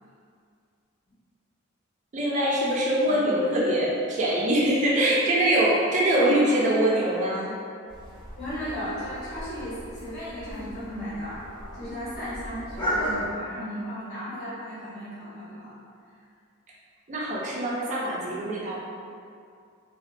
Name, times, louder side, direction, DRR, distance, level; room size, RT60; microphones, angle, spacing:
voice 1, 2.1-7.5 17.1-18.8, right 1 dB, 35° right, -5 dB, 0.4 m, -23 dB
voice 2, 6.1-6.5 7.0-7.2 8.4-11.4 11.7-15.8, equal, 45° left, -14 dB, 1.1 m, -35 dB
sound 1, 7.9-13.3, equal, 20° left, 0.6 m, -35 dB
2.8 x 2.1 x 2.5 m, 2.3 s
head